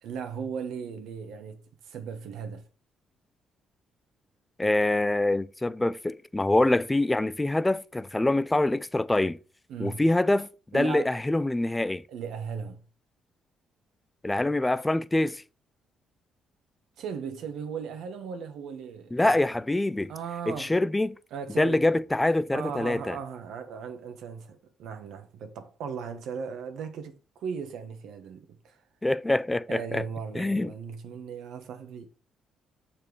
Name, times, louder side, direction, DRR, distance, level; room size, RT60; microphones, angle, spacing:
voice 1, 0.0-2.6 9.7-10.0 10.7-11.2 12.1-12.8 17.0-19.4 20.1-20.7 21.3-21.8 22.5-28.8 29.7-32.1, right 6 dB, 80° right, 1.2 m, -37 dB
voice 2, 4.6-9.4 9.8-12.0 14.2-15.4 19.1-20.1 20.5-21.2 21.6-23.2 29.0-30.0 30.4-30.7, left 2 dB, 15° left, 0.4 m, -25 dB
7.1 x 4.4 x 4.7 m
cardioid pair, 90°, 0 cm